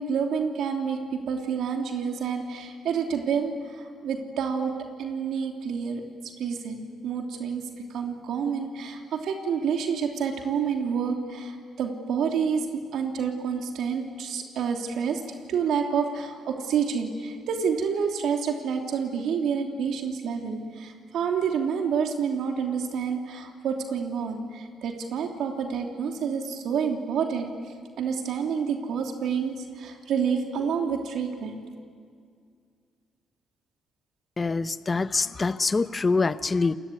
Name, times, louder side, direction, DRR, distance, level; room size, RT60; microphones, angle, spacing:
voice 1, 0.0-7.6 7.9-15.2 15.5-27.5 28.0-31.6, right 6 dB, 75° right, 3 dB, 3.1 m, -28 dB
voice 2, 34.4-36.7, left 4 dB, 30° left, 13 dB, 0.9 m, -25 dB
28.5 x 20.5 x 9.7 m, 2.2 s
cardioid pair, 90°, 0 cm